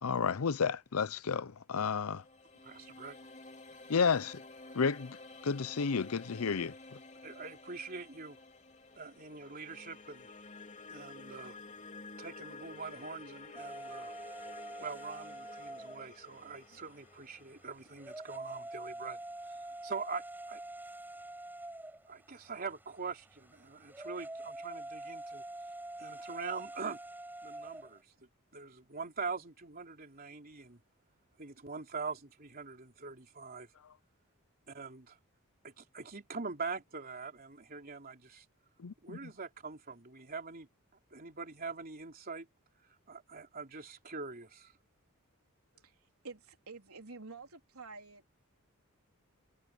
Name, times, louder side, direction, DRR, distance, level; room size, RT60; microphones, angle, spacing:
voice 1, 0.0-2.2 3.9-4.4 4.7-7.0 33.8-33.9 38.8-39.3, left 5 dB, 80° left, 0.6 m, -32 dB
sound 1, 1.9-18.9, left 3 dB, 35° left, 3.6 m, -52 dB
voice 2, 2.6-3.2 7.2-8.4 9.0-10.3 10.9-11.6 12.2-14.1 14.8-20.6 22.1-25.4 26.0-27.0 27.4-30.8 31.4-33.7 34.7-35.2 35.6-38.4 39.0-40.7 41.1-42.5 43.1-44.7, right 4 dB, 45° right, 3.4 m, -43 dB
Steam Whistle, 13.6-28.0, right 1 dB, 10° right, 6.2 m, -46 dB
voice 3, 45.8-48.4, right 4 dB, 85° right, 3.6 m, -49 dB
head